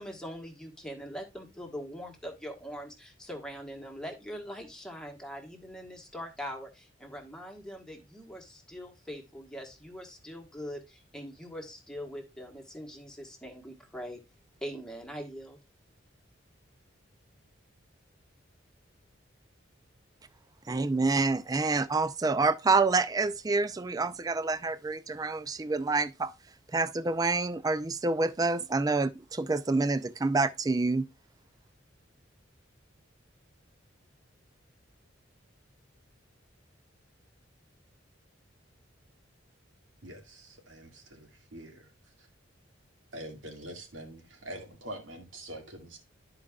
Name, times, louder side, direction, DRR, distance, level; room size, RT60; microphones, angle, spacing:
voice 1, 0.0-14.2 14.6-15.6, equal, 5° left, 1.5 m, -42 dB
voice 2, 20.7-26.3 26.7-31.1, right 3 dB, 20° right, 0.4 m, -27 dB
voice 3, 40.0-41.9 42.2-42.3 43.1-46.0, right 1 dB, 80° right, 2.0 m, -44 dB
12.5 x 4.8 x 2.4 m
head